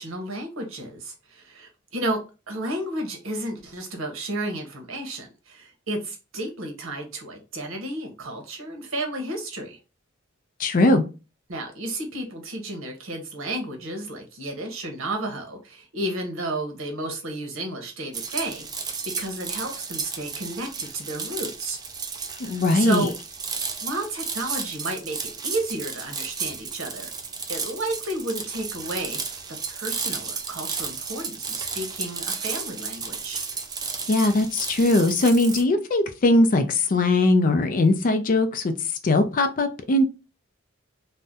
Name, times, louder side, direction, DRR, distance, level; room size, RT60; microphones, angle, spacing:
voice 1, 0.0-2.2 2.5-9.8 11.5-18.7 19.2-21.8 22.5-23.1 23.8-29.4 29.7-33.4, right 1 dB, 75° right, 0.9 m, -32 dB
voice 2, 10.6-11.0 22.4-23.1 34.1-38.7 39.0-40.1, left 2 dB, 45° left, 0.4 m, -20 dB
sound 1, 18.1-35.6, right 5 dB, 20° right, 0.4 m, -33 dB
2.6 x 2.1 x 3.5 m
head